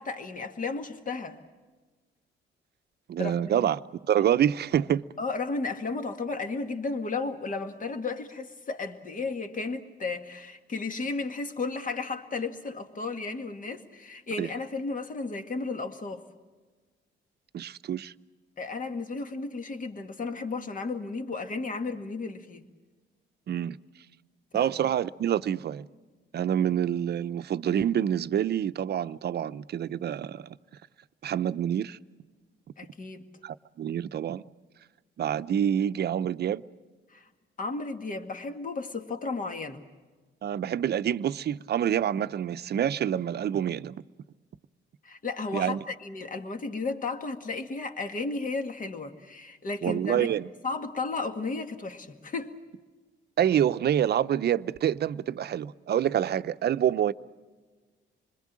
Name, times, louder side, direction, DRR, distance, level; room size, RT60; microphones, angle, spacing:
voice 1, 0.0-1.4 3.2-3.7 5.2-16.2 18.6-22.7 24.5-24.7 32.8-33.3 37.1-37.3 37.6-39.8 45.0-50.3 50.6-52.5, left 3 dB, 40° left, 2.0 m, -34 dB
voice 2, 3.1-3.8 4.1-5.0 14.4-14.5 17.5-18.1 23.5-23.8 24.5-25.9 26.3-30.6 31.2-32.0 33.4-34.4 35.2-36.6 40.4-44.0 45.5-45.8 49.8-50.5 53.4-57.1, right 10 dB, 55° right, 0.7 m, -27 dB
27.5 x 21.5 x 7.5 m
cardioid pair, 90°, 20 cm